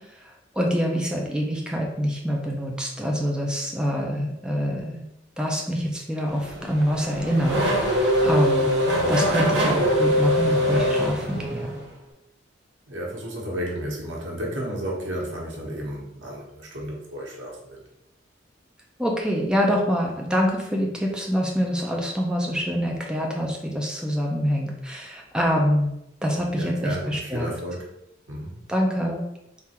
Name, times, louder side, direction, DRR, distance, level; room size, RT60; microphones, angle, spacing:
voice 1, 0.2-5.0 5.4-8.7 9.1-11.9 19.0-25.9 26.2-27.5 28.7-29.2, equal, 5° right, -1 dB, 0.5 m, -25 dB
Race car auto racing / Accelerating revving vroom, 6.3-11.9, equal, 65° right, 0.9 m, -23 dB
voice 2, 12.9-17.8 26.6-27.9 28.3-28.6, equal, 85° right, -2 dB, 1.1 m, -32 dB
3.7 x 2.5 x 4.3 m, 0.82 s
head